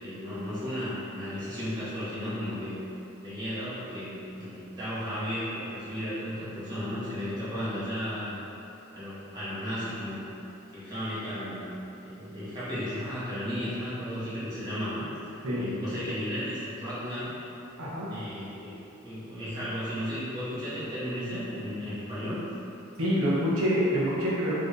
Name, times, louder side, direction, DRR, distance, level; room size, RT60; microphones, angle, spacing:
voice 1, 0.0-2.7 3.2-8.4 8.9-10.3 10.7-11.7 12.0-17.3 18.1-22.4, equal, 20° right, -13 dB, 1.5 m, -34 dB
voice 2, 17.8-18.1 23.0-24.5, equal, 75° right, -7 dB, 1.1 m, -26 dB
4.4 x 3.2 x 3.3 m, 2.9 s
head